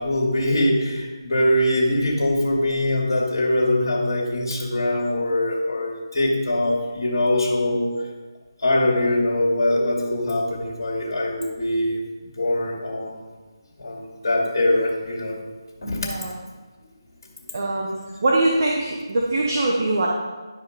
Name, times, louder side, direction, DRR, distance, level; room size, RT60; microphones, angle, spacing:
voice 1, 0.0-7.9 8.6-12.0 12.4-13.1 13.8-15.4 15.8-16.1, left 1 dB, 50° left, -2 dB, 2.0 m, -22 dB
voice 2, 15.8-16.3 17.5-20.1, right 2 dB, 45° right, -2 dB, 1.2 m, -23 dB
11.0 x 4.9 x 4.9 m, 1.3 s
figure-of-eight pair, 160°, 2 cm